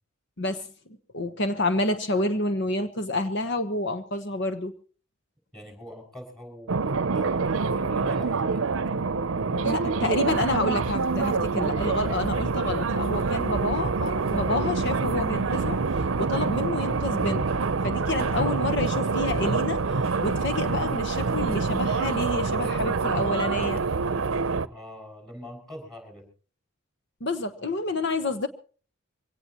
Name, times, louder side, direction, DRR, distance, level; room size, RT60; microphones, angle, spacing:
voice 1, 1.1-4.7 9.6-15.8 16.2-17.5 17.8-19.8 20.2-23.8 27.2-28.5, left 2 dB, 60° left, 9 dB, 1.1 m, -28 dB
voice 2, 5.5-9.1 9.4-10.3 18.2-19.0 24.7-26.3, equal, ahead, 4 dB, 6.1 m, -43 dB
sound 1, 6.7-24.7, right 4 dB, 80° right, 0.7 m, -26 dB
24.0 x 17.5 x 3.0 m, 0.39 s
head